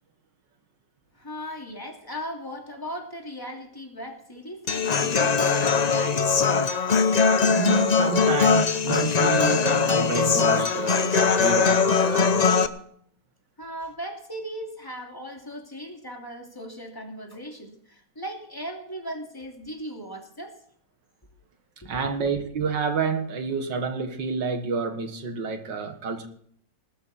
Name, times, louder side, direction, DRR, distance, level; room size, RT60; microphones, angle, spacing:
voice 1, 1.1-6.2 13.6-20.6 21.8-22.1, equal, 10° left, 1 dB, 2.7 m, -37 dB
Human voice / Acoustic guitar, 4.7-12.7, left 5 dB, 85° left, 0.3 m, -21 dB
voice 2, 7.5-12.5 21.8-26.3, right 5 dB, 75° right, 7 dB, 2.3 m, -29 dB
20.0 x 12.5 x 4.3 m, 0.64 s
omnidirectional pair, 2.0 m